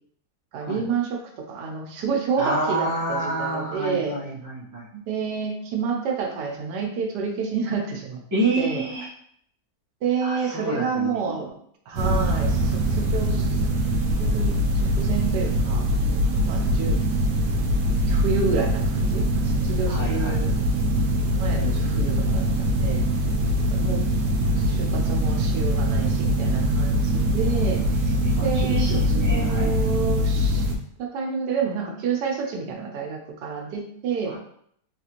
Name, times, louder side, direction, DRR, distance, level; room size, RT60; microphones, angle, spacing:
voice 1, 0.5-1.2 1.5-4.2 4.9-8.2 8.6-8.8 10.0-11.5 11.9-13.6 14.2-15.9 16.4-17.0 18.0-20.5 21.3-23.0 23.7-24.0 24.6-28.0 28.4-30.6 31.0-34.3, right 5 dB, 85° right, 2 dB, 1.3 m, -29 dB
voice 2, 2.4-4.9 8.3-9.1 10.2-11.4 19.9-20.4 28.2-29.9 34.3-34.4, right 1 dB, 20° right, -5 dB, 0.5 m, -28 dB
sound 1, 12.0-30.8, equal, 65° right, 0.9 m, -23 dB
4.0 x 2.5 x 2.9 m, 0.68 s
omnidirectional pair, 1.8 m